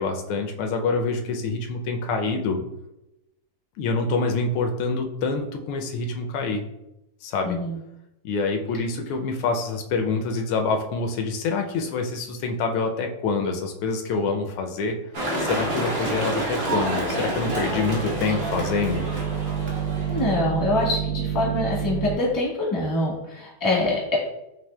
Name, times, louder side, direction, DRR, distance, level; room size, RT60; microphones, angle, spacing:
voice 1, 0.0-2.6 3.8-6.6 7.2-7.6 8.2-15.0 15.4-19.0, left 4 dB, 80° left, 4 dB, 1.4 m, -26 dB
voice 2, 7.4-7.8 20.1-24.2, left 2 dB, 20° left, -5 dB, 0.6 m, -25 dB
sound 1, 15.1-20.3, right 1 dB, 60° right, 0.6 m, -28 dB
sound 2, 17.2-22.2, right 8 dB, 75° right, 1.8 m, -29 dB
5.8 x 2.7 x 2.2 m, 0.90 s
omnidirectional pair, 2.3 m